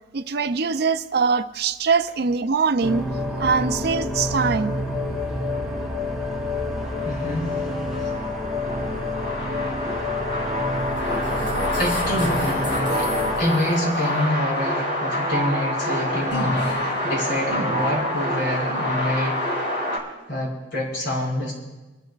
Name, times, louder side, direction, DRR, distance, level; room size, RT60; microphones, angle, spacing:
voice 1, 0.1-3.0 3.4-4.7, right 5 dB, 60° right, 10 dB, 0.5 m, -22 dB
sound 1, 2.8-13.4, left 2 dB, 5° right, 1.4 m, -28 dB
sound 2, 5.0-20.0, equal, 90° left, 3.2 m, -27 dB
voice 2, 7.0-7.6 11.8-13.1 13.4-19.4 20.3-21.5, left 1 dB, 70° left, -4 dB, 5.1 m, -26 dB
29.0 x 12.5 x 2.4 m, 1.1 s
head